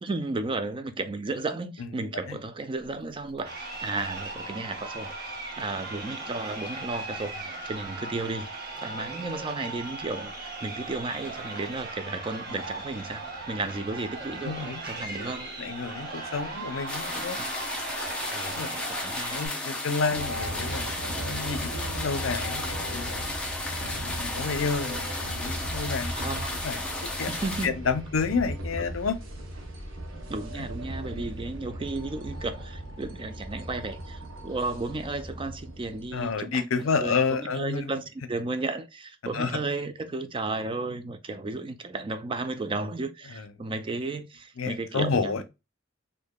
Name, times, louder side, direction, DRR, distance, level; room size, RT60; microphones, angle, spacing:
voice 1, 0.0-15.5 17.2-17.5 18.3-19.4 20.1-20.3 26.2-26.5 27.3-27.8 30.3-36.6 37.0-45.4, right 3 dB, 25° right, 0.4 m, -34 dB
Crowd, 3.4-19.5, right 2 dB, 55° right, 1.2 m, -38 dB
voice 2, 14.4-14.9 15.2-15.3 15.6-17.4 18.5-18.7 19.3-23.3 23.8-26.3 26.6-27.3 27.6-29.2 30.6-30.7 31.1-31.2 36.1-37.9 39.3-39.6 43.4-43.5 44.6-45.4, left 5 dB, 80° left, 0.6 m, -30 dB
sound 1, 16.9-27.7, left 2 dB, 5° left, 0.8 m, -34 dB
sound 2, 20.1-36.4, right 1 dB, 70° right, 0.9 m, -38 dB
4.6 x 2.6 x 2.2 m
head